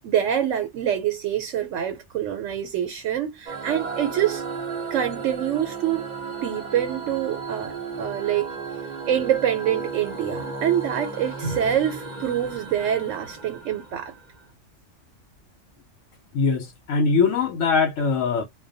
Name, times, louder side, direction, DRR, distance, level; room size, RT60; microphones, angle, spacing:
voice 1, 0.0-4.4 4.9-6.0 6.4-8.5 9.1-14.1, right 10 dB, 80° right, 1.0 m, -25 dB
sound 1, 3.5-14.4, right 4 dB, 40° right, 0.8 m, -34 dB
voice 2, 16.3-18.4, left 5 dB, 90° left, 0.9 m, -22 dB
2.2 x 2.2 x 2.5 m
omnidirectional pair, 1.3 m